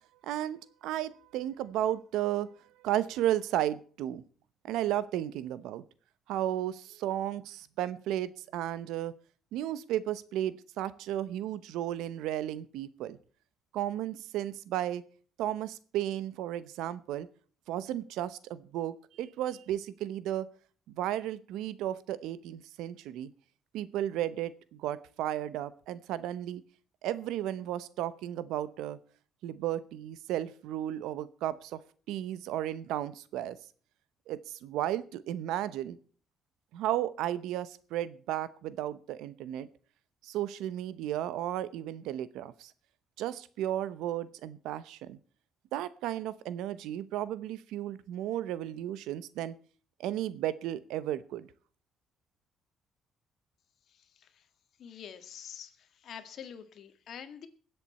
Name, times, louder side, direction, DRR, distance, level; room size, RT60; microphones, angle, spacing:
voice 1, 0.2-2.5 2.8-4.2 4.6-5.8 6.3-9.1 9.5-13.2 13.7-15.0 15.4-17.3 17.7-20.5 20.9-23.3 23.7-26.6 27.0-29.0 29.4-31.8 32.1-33.6 34.3-36.0 36.7-39.7 40.2-42.7 43.2-45.2 45.7-49.6 50.0-51.5, right 12 dB, 90° right, 16 dB, 0.8 m, -34 dB
voice 2, 53.9-54.5 54.8-57.5, left 8 dB, 65° left, 10 dB, 1.7 m, -47 dB
22.0 x 7.9 x 4.3 m, 0.42 s
cardioid pair, 100°, 0 cm